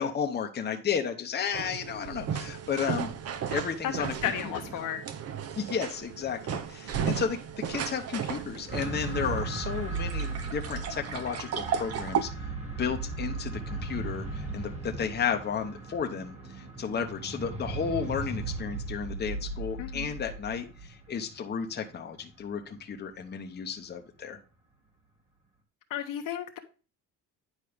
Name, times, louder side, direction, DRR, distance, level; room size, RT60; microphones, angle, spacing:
voice 1, 0.0-3.1 3.5-4.1 4.4-4.9 5.5-24.4, left 7 dB, 30° left, 0.9 m, -33 dB
sound 1, 1.5-12.2, right 8 dB, 45° right, 0.7 m, -35 dB
voice 2, 4.2-5.0 19.8-20.1 25.9-26.6, left 10 dB, 60° left, 1.1 m, -33 dB
sound 2, 8.7-23.0 23.8-23.9, right 3 dB, 15° right, 1.8 m, -37 dB
9.7 x 4.5 x 3.4 m
cardioid pair, 115°, 36 cm